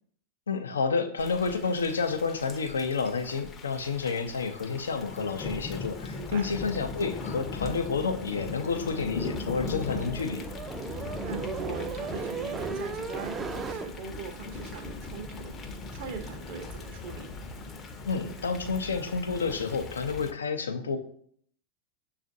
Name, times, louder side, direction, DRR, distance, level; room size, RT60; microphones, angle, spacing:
voice 1, 0.5-10.4 18.0-21.0, left 5 dB, 85° left, 7 dB, 0.4 m, -30 dB
Thunder / Rain, 1.2-20.3, left 3 dB, 30° left, 0.5 m, -39 dB
voice 2, 6.1-6.5 10.8-17.4, right 4 dB, 60° right, 6 dB, 0.7 m, -41 dB
sound 1, 9.2-13.9, right 5 dB, 25° right, 0.4 m, -37 dB
6.3 x 2.4 x 2.6 m, 0.63 s
hypercardioid pair, 95°, 0 cm